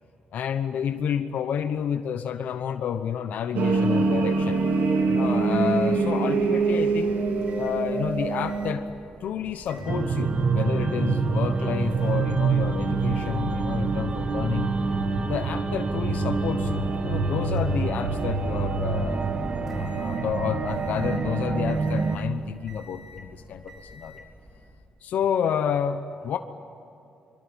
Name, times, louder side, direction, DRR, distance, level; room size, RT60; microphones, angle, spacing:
voice 1, 0.3-4.6 5.1-7.1 7.6-8.9 9.2-14.7 15.2-19.4 19.7-24.2 25.0-26.4, left 8 dB, 70° left, 8 dB, 1.0 m, -30 dB
sound 1, 3.5-8.7, right 4 dB, 75° right, 3.6 m, -23 dB
Microwave oven, 6.9-24.8, equal, 20° right, 3.7 m, -39 dB
sound 2, 9.9-22.2, right 4 dB, 40° right, 1.7 m, -26 dB
25.0 x 23.0 x 8.9 m, 2.8 s
cardioid pair, 135°, 3 cm